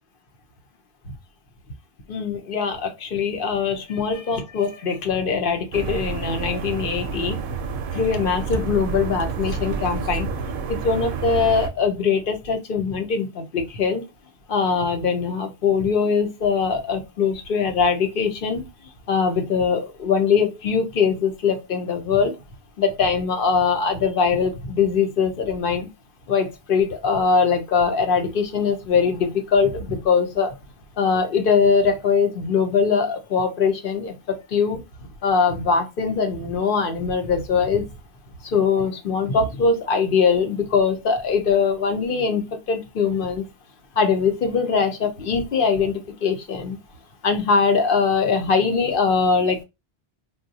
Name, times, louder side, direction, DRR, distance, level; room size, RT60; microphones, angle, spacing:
voice 1, 2.1-7.4 7.9-10.3 10.7-14.0 14.5-18.7 19.1-22.3 22.8-25.9 26.3-30.6 31.0-37.8 38.4-43.5 44.0-46.8 47.2-49.6, left 5 dB, 60° left, 0.8 m, -22 dB
sound 1, 5.7-11.7, right 5 dB, 65° right, 0.7 m, -29 dB
3.6 x 2.3 x 2.6 m
omnidirectional pair, 1.1 m